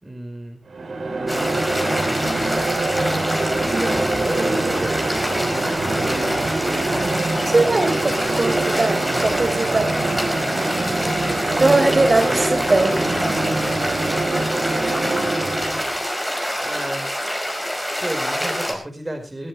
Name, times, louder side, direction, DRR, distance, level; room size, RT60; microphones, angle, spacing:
voice 1, 0.0-0.6 3.7-5.1 16.6-17.1 18.0-19.5, right 1 dB, 20° right, 6 dB, 5.0 m, -31 dB
sound 1, 0.7-16.0, right 2 dB, 70° right, 4.0 m, -24 dB
sound 2, 1.3-18.7, equal, ahead, 5.2 m, -26 dB
voice 2, 7.5-9.9 11.6-13.0, right 2 dB, 40° right, 9 dB, 3.8 m, -20 dB
21.0 x 14.0 x 3.3 m, 0.31 s
wide cardioid pair, 75°, 0 cm